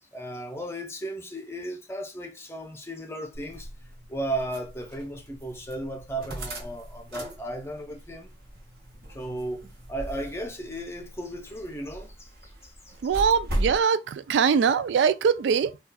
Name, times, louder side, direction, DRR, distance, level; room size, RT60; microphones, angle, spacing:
voice 1, 0.1-3.7 4.1-8.3 9.1-9.6 9.9-13.0, right 1 dB, 15° left, 0.6 m, -35 dB
sound 1, 3.3-13.8, right 1 dB, 55° right, 1.4 m, -38 dB
voice 2, 13.0-15.8, right 6 dB, 80° right, 0.3 m, -22 dB
4.1 x 2.3 x 2.2 m
head